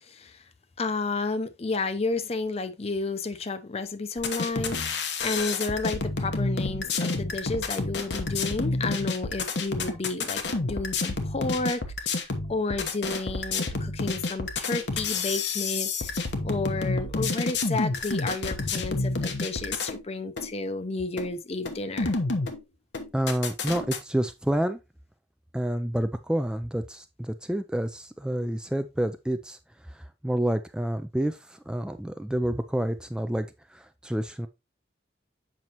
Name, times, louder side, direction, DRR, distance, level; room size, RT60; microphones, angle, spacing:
voice 1, 0.1-0.4 0.8-22.1, left 3 dB, 35° left, 0.6 m, -31 dB
sound 1, 4.2-20.0 20.4-20.5 21.2-21.3 21.6-22.6 22.9-24.0, left 3 dB, 85° left, 1.0 m, -29 dB
voice 2, 23.1-24.8 25.5-29.6 29.9-34.5, right 1 dB, 5° right, 0.3 m, -29 dB
7.6 x 5.4 x 2.9 m
head